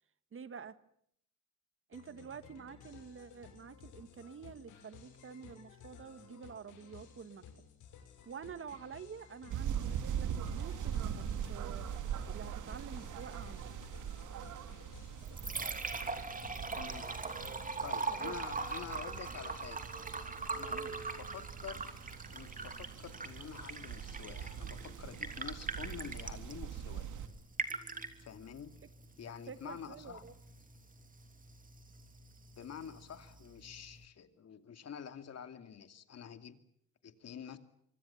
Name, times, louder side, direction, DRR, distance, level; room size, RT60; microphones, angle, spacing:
voice 1, 0.3-0.7 1.9-7.4 8.2-11.9 12.3-13.7 17.4-17.6 18.1-18.4 20.7-20.9 29.5-30.3, right 6 dB, 45° right, 13 dB, 1.5 m, -48 dB
sound 1, 1.9-18.2, left 7 dB, 80° left, 6.6 m, -56 dB
sound 2, 9.5-27.3, right 9 dB, 80° right, 2.8 m, -42 dB
Liquid, 15.0-34.0, right 4 dB, 25° right, 3.0 m, -42 dB
voice 2, 16.7-17.1 17.4-19.8 20.5-21.8 22.3-27.1 28.2-28.7 29.2-30.2 32.5-36.6 37.0-37.6, left 8 dB, 55° left, 9 dB, 2.6 m, -48 dB
25.5 x 24.0 x 7.2 m, 0.72 s
cardioid pair, 90°, 30 cm